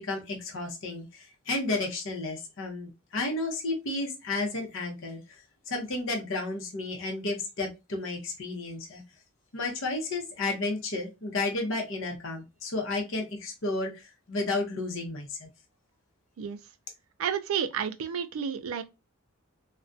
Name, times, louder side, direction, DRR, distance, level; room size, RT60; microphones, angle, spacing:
voice 1, 0.0-5.4 5.7-9.0 9.5-15.5, left 2 dB, 60° left, 0.7 m, -32 dB
voice 2, 17.2-18.8, right 7 dB, 70° right, 0.3 m, -31 dB
2.3 x 2.1 x 2.5 m
head